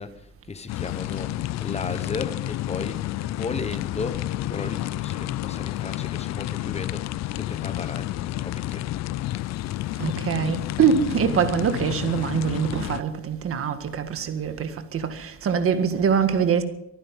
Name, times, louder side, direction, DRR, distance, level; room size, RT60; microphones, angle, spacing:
voice 1, 0.0-8.9, left 4 dB, 20° left, 1.2 m, -35 dB
sound 1, 0.7-13.0, left 15 dB, 50° left, 0.5 m, -30 dB
voice 2, 10.0-16.6, right 7 dB, 40° right, 1.8 m, -24 dB
24.0 x 9.6 x 5.4 m
cardioid pair, 135°, 34 cm